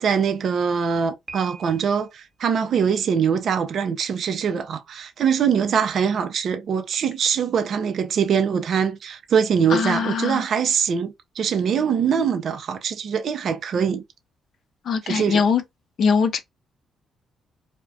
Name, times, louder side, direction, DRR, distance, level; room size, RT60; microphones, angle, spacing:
voice 1, 0.0-14.0 15.1-15.4, right 7 dB, 60° right, 0.5 m, -23 dB
Piano, 1.3-2.2, right 3 dB, 25° right, 0.8 m, -42 dB
voice 2, 9.7-10.5 14.8-15.6 16.0-16.4, left 5 dB, 60° left, 0.4 m, -21 dB
2.3 x 2.1 x 2.5 m
cardioid pair, 90°, 0 cm